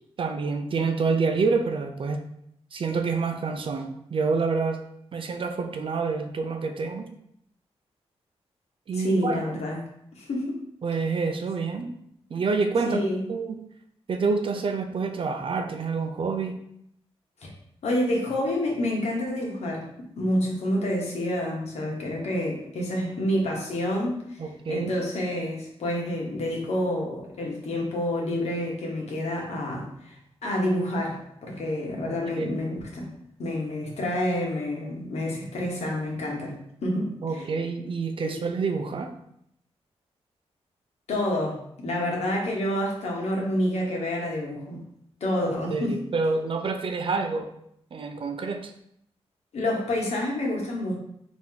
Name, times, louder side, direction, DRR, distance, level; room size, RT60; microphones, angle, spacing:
voice 1, 0.2-2.2 2.7-4.8 5.1-7.1 8.9-9.6 10.8-11.9 12.3-13.0 13.3-13.6 14.1-16.5 24.4-24.9 32.1-32.6 37.2-39.1 45.7-47.5 47.9-48.7, right 4 dB, 50° right, 6 dB, 0.5 m, -27 dB
voice 2, 9.0-9.8 10.2-10.6 12.9-13.2 17.4-17.5 17.8-19.9 20.2-30.2 30.4-33.1 33.4-36.5 36.8-37.4 38.2-38.4 41.1-44.8 45.2-46.0 49.5-51.0, left 1 dB, 75° left, -1 dB, 1.2 m, -28 dB
4.0 x 3.0 x 3.8 m, 0.72 s
cardioid pair, 100°, 11 cm